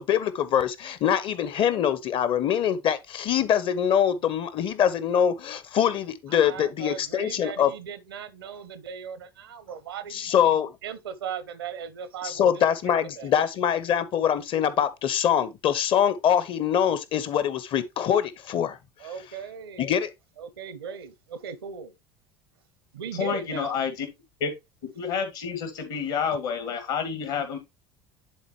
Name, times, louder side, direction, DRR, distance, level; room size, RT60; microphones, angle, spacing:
voice 1, 0.0-7.7 10.1-10.7 12.2-18.8 19.8-20.1, left 9 dB, 45° left, 0.9 m, -24 dB
voice 2, 6.3-13.3 19.0-20.1 20.4-21.9 22.9-23.8, right 7 dB, 75° right, 0.8 m, -38 dB
voice 3, 23.1-24.1 24.4-24.5 24.9-27.6, left 6 dB, 65° left, 2.2 m, -29 dB
10.5 x 4.1 x 2.9 m
figure-of-eight pair, 65°, 12 cm